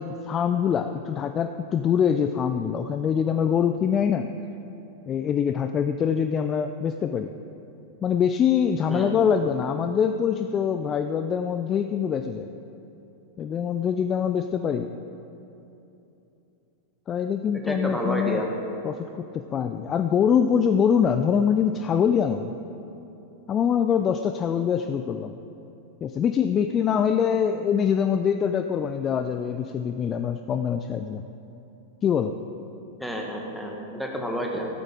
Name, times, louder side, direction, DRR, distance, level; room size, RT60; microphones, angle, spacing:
voice 1, 0.0-4.3 5.1-7.3 8.0-12.5 13.4-14.9 17.1-18.4 18.8-22.5 23.5-25.3 26.0-31.3 32.0-32.3, left 7 dB, 25° left, 8 dB, 0.4 m, -24 dB
voice 2, 8.9-9.3 17.7-18.5 33.0-34.7, equal, ahead, 0 dB, 1.7 m, -30 dB
14.5 x 13.0 x 3.8 m, 2.9 s
figure-of-eight pair, 90°, 0 cm